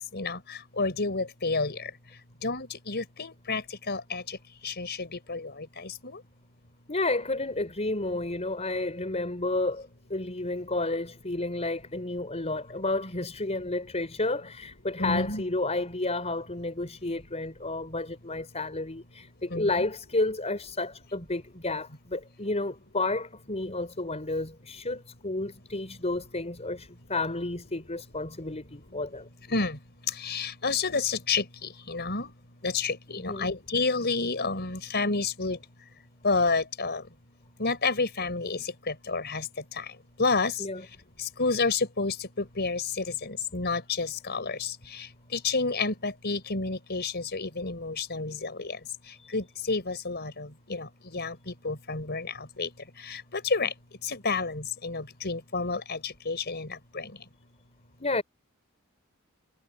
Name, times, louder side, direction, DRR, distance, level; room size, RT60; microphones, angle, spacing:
voice 1, 0.8-1.7 2.4-3.6 3.9-4.2 4.6-5.5 6.0-6.2 15.0-15.4 19.5-19.7 29.5-29.7 30.2-31.4 31.9-32.3 32.6-35.6 36.2-37.0 37.6-38.6 39.1-39.4 40.2-40.5 41.4-42.1 42.6-44.7 45.3-48.7 49.3-50.9 51.1-51.3 51.6-52.3 52.6-52.7 53.1-53.7 54.1-56.7, left 4 dB, 50° left, 5.0 m, -29 dB
voice 2, 6.9-29.3 33.1-33.5 40.6-40.8 49.2-49.3 58.0-58.2, left 2 dB, 30° left, 5.0 m, -31 dB
head